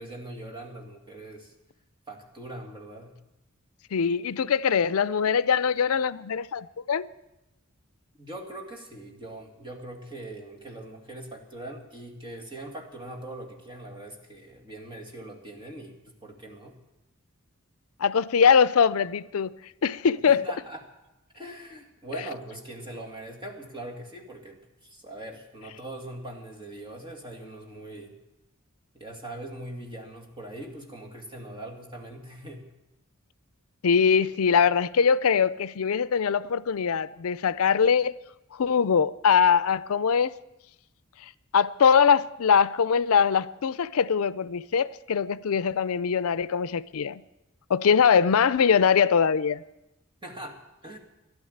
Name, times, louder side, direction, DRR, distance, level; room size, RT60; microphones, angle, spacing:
voice 1, 0.0-1.5 2.1-3.2 8.2-16.7 20.3-20.8 21.3-24.6 24.9-28.1 28.9-32.6 50.2-51.0, right 1 dB, 20° right, 2.3 m, -41 dB
voice 2, 3.9-7.1 18.0-19.5 19.8-20.4 33.8-38.2 38.5-40.4 41.5-47.2 47.7-49.6, left 6 dB, 75° left, 0.5 m, -22 dB
13.5 x 11.5 x 8.0 m
head